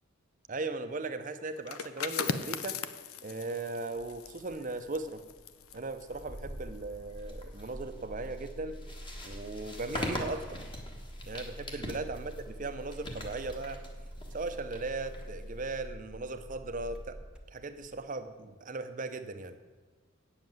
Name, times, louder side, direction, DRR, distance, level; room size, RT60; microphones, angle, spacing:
voice 1, 0.5-2.8 3.2-5.2 5.7-8.8 9.2-10.6 11.3-13.8 14.3-17.2 17.5-19.6, right 3 dB, 40° right, 9 dB, 0.7 m, -38 dB
sound 1, 1.6-7.1 7.4-7.7, left 6 dB, 90° left, 0.6 m, -39 dB
Engine starting, 4.0-18.1, equal, 5° right, 0.8 m, -46 dB
sound 2, 7.2-15.8, left 1 dB, 20° left, 1.2 m, -43 dB
8.8 x 7.4 x 7.7 m, 1.4 s
head